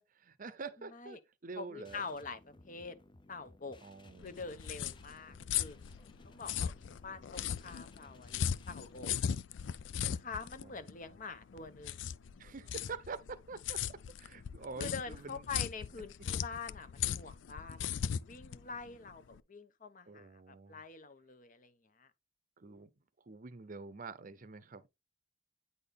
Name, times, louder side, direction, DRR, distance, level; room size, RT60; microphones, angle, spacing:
voice 1, 0.0-2.0 3.8-4.4 10.6-10.7 12.4-15.4 20.1-20.8 22.6-22.9 23.3-24.9, right 4 dB, 45° right, 0.6 m, -46 dB
voice 2, 0.8-1.2 1.6-2.9 3.3-3.8 4.2-5.8 6.2-6.7 7.0-9.1 10.0-12.1 14.8-22.1, left 4 dB, 45° left, 0.9 m, -45 dB
sound 1, 1.8-9.2, left 2 dB, 25° left, 0.6 m, -59 dB
sound 2, 4.2-19.4, left 9 dB, 80° left, 0.4 m, -38 dB
9.3 x 4.2 x 3.4 m
head